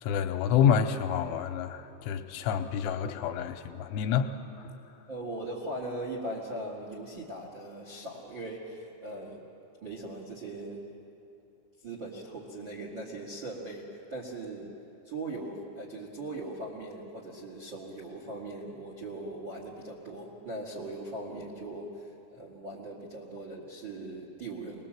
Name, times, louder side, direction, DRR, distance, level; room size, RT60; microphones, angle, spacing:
voice 1, 0.0-4.7, left 8 dB, 80° left, 6 dB, 3.1 m, -28 dB
voice 2, 5.1-9.5 9.8-10.9 11.8-14.8 15.0-24.9, right 2 dB, 45° right, -2 dB, 1.6 m, -40 dB
25.0 x 20.0 x 7.6 m, 2.7 s
omnidirectional pair, 5.6 m